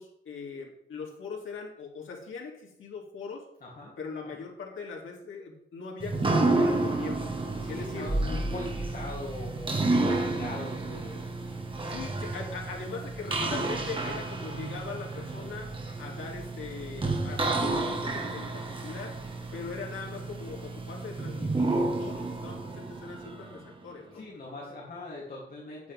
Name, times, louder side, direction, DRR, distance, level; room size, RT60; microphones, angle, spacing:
voice 1, 0.0-3.5 4.0-7.3 7.7-8.1 11.9-19.2 19.5-24.2, left 5 dB, 80° left, -1 dB, 3.0 m, -41 dB
voice 2, 3.6-4.0 4.2-4.4 7.6-11.2 24.1-25.9, left 2 dB, 45° left, -6 dB, 3.1 m, -41 dB
sound 1, 6.0-23.8, right 2 dB, 25° right, 1.6 m, -31 dB
9.5 x 9.4 x 3.6 m, 0.75 s
wide cardioid pair, 130°, 20 cm